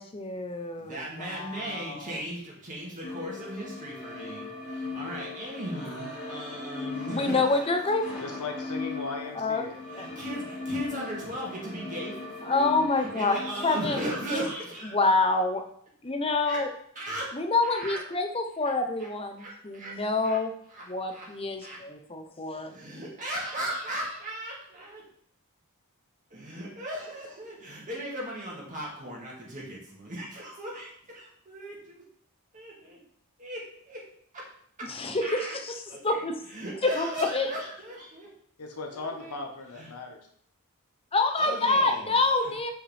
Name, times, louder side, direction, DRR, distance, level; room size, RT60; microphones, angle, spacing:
voice 1, 0.0-2.1 7.1-8.1 9.3-9.6 9.9-10.1 12.5-14.0 14.3-14.4 14.9-15.6 16.0-16.7 17.3-19.3 19.7-20.5 20.9-22.7 34.9-35.7 36.0-36.4 36.8-37.1 37.3-37.5 41.1-42.7, left 3 dB, 25° left, 6 dB, 0.8 m, -27 dB
voice 2, 0.8-7.7 9.9-15.1 16.4-16.7 17.0-17.3 17.6-18.0 19.0-19.1 19.4-20.0 20.2-20.4 20.7-21.8 22.7-25.1 26.3-32.0 32.5-33.0 33.4-34.1 34.3-34.5 34.8-34.9 35.2-35.6 35.9-38.3 38.9-39.5 39.7-39.9 41.4-42.5, right 1 dB, 35° right, -4 dB, 2.1 m, -37 dB
sound 1, 3.0-14.4, left 3 dB, 50° left, 2.7 m, -38 dB
voice 3, 8.2-9.8 38.6-40.2, left 3 dB, 85° left, 2 dB, 1.4 m, -37 dB
7.9 x 5.6 x 3.5 m, 0.63 s
head